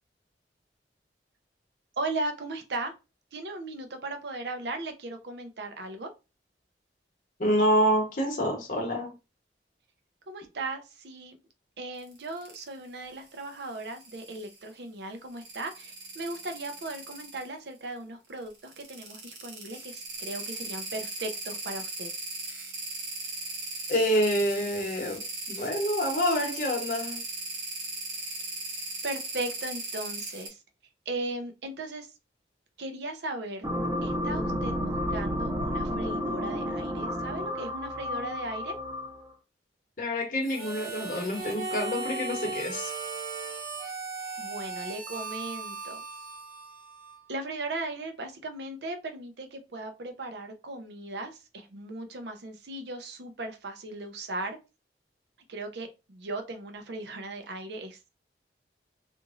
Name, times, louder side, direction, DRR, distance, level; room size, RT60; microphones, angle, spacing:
voice 1, 1.9-2.9 3.3-6.1 10.3-11.4 11.8-22.1 29.0-30.6 31.1-32.1 32.8-33.7 34.0-38.8 44.4-46.0 47.3-54.6 55.5-58.2, right 2 dB, 70° right, 0.6 m, -37 dB
voice 2, 7.4-9.1 23.9-27.2 40.0-42.9, equal, 45° left, 0.9 m, -27 dB
sound 1, 12.0-12.7 13.3-14.6 15.3-17.5 18.5-30.5, right 3 dB, 90° right, 1.0 m, -38 dB
sound 2, 33.6-39.3, equal, 20° right, 0.7 m, -31 dB
Harmonica, 40.4-47.4, right 4 dB, 55° right, 1.1 m, -37 dB
2.9 x 2.5 x 2.4 m
head